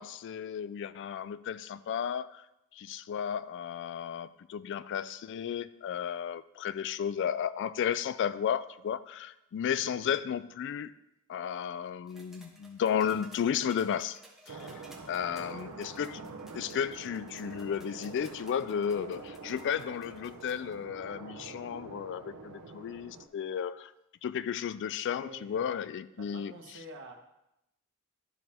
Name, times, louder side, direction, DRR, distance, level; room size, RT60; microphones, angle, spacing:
voice 1, 0.0-2.5 2.7-10.9 11.3-14.2 14.5-16.2 16.5-23.9 24.2-26.5, left 8 dB, 55° left, 15 dB, 0.3 m, -33 dB
sound 1, 12.1-20.8 22.0-22.1, right 1 dB, ahead, 1.2 m, -57 dB
sound 2, 14.5-23.3, right 3 dB, 90° right, 0.8 m, -46 dB
voice 2, 15.2-15.6 25.2-25.8 26.2-27.1, right 1 dB, 55° right, 3 dB, 1.2 m, -49 dB
12.0 x 4.9 x 3.5 m, 0.87 s
head